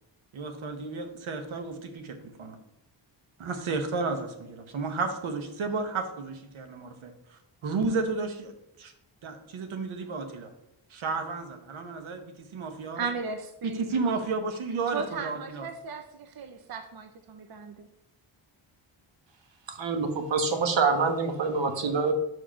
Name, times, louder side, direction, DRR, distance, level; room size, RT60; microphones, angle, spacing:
voice 1, 0.3-2.6 3.4-8.5 8.8-8.9 9.2-10.5 10.9-13.0 13.6-15.7, right 4 dB, 85° right, 6 dB, 1.2 m, -32 dB
voice 2, 13.0-14.0 14.9-17.9, right 5 dB, 50° right, 6 dB, 0.7 m, -36 dB
voice 3, 19.7-22.1, right 4 dB, 65° right, 6 dB, 1.3 m, -26 dB
5.9 x 5.2 x 5.7 m, 0.85 s
wide cardioid pair, 115°, 47 cm